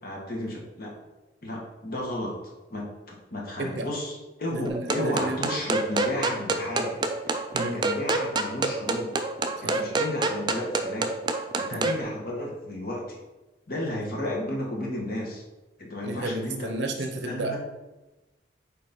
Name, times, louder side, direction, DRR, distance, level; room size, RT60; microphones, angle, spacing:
voice 1, 0.0-0.9 1.4-2.3 2.7-9.1 9.6-11.2 11.6-13.2 13.7-15.4 15.8-16.7 17.2-17.6, left 1 dB, 50° left, -2 dB, 1.7 m, -33 dB
voice 2, 4.5-5.4 7.5-7.8 9.6-9.8 11.7-11.9 14.2-14.3 16.0-17.6, right 2 dB, 65° right, 5 dB, 0.7 m, -32 dB
sound 1, 4.7-12.0, right 3 dB, 25° right, 0.4 m, -27 dB
5.3 x 4.3 x 5.2 m, 1.1 s
head